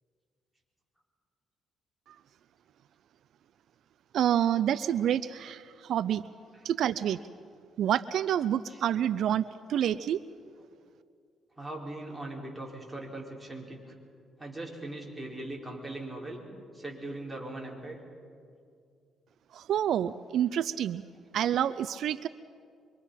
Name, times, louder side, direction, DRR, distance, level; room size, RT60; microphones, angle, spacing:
voice 1, 4.1-6.2 6.6-7.2 7.8-10.2 19.5-21.0 21.3-22.3, right 10 dB, 70° right, 14 dB, 0.5 m, -28 dB
voice 2, 11.6-13.9 14.4-16.4 16.7-18.0, right 2 dB, 5° right, -2 dB, 5.1 m, -40 dB
25.5 x 24.0 x 5.8 m, 2.3 s
cardioid pair, 90°, 0 cm